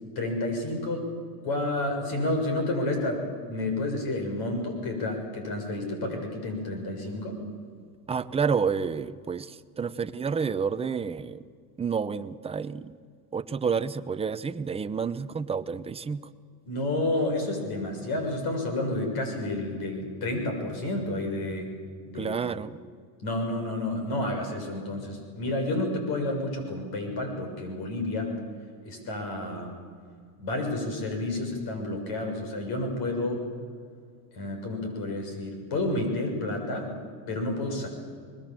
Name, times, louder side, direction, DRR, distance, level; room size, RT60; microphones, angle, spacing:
voice 1, 0.1-1.1 1.4-3.2 3.5-7.4 16.7-21.7 22.1-22.4 23.2-28.3 28.8-29.8 30.4-33.5 34.3-36.9 37.3-37.9, left 2 dB, 50° left, 4 dB, 6.8 m, -30 dB
voice 2, 8.1-11.4 11.8-12.9 13.3-16.2 22.1-22.8, right 6 dB, 15° right, 11 dB, 0.6 m, -29 dB
25.0 x 21.0 x 7.5 m, 2.1 s
supercardioid pair, 125°, 46 cm